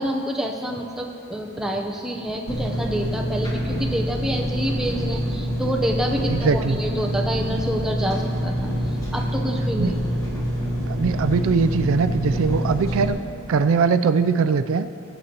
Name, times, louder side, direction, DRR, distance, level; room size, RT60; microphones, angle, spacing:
voice 1, 0.0-10.0, equal, ahead, 0 dB, 0.6 m, -28 dB
Engine, 2.5-13.1, equal, 15° left, 1.4 m, -26 dB
voice 2, 6.3-6.8 9.8-9.9 10.9-13.2 13.5-14.9, right 5 dB, 70° right, 11 dB, 0.3 m, -21 dB
19.5 x 8.0 x 2.9 m, 2.7 s
head